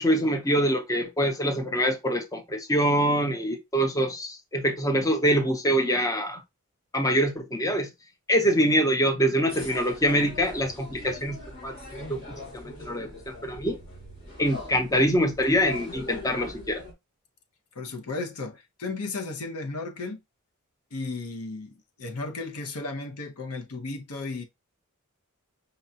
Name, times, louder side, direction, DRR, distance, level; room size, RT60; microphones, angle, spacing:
voice 1, 0.0-6.4 6.9-7.9 8.3-11.8 12.1-12.2 12.5-13.8 14.4-16.8, equal, 15° left, 0.6 m, -24 dB
sound 1, 9.5-16.9, left 2 dB, 60° left, 1.7 m, -41 dB
voice 2, 17.7-20.2 20.9-24.4, left 3 dB, 85° left, 0.8 m, -34 dB
5.4 x 2.3 x 2.7 m
head